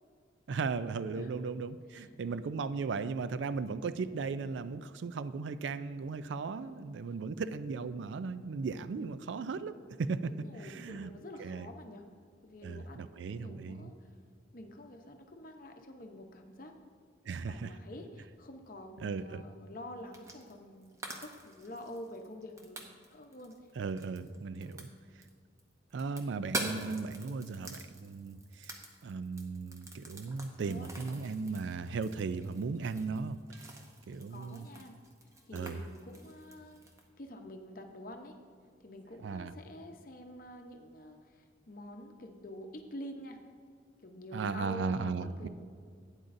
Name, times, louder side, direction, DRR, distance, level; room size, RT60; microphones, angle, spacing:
voice 1, 0.5-9.7 10.0-10.3 10.6-11.1 11.4-11.7 12.6-13.9 17.2-17.8 19.0-19.4 23.8-24.9 25.9-28.7 29.0-33.4 34.1-34.7 35.5-35.8 39.2-39.5 44.3-45.5, right 4 dB, 85° right, 14 dB, 0.4 m, -36 dB
voice 2, 10.3-12.1 12.4-13.1 13.4-14.1 14.5-16.9 17.5-23.5 24.6-24.9 30.5-30.9 34.1-34.9 35.4-36.8 37.2-38.4 38.8-43.4 44.0-45.5, left 1 dB, 50° left, 4 dB, 0.8 m, -47 dB
sound 1, 20.1-20.6 20.8-25.3 25.6-37.1, right 1 dB, 15° right, 0.7 m, -45 dB
12.0 x 9.0 x 2.6 m, 2.1 s
head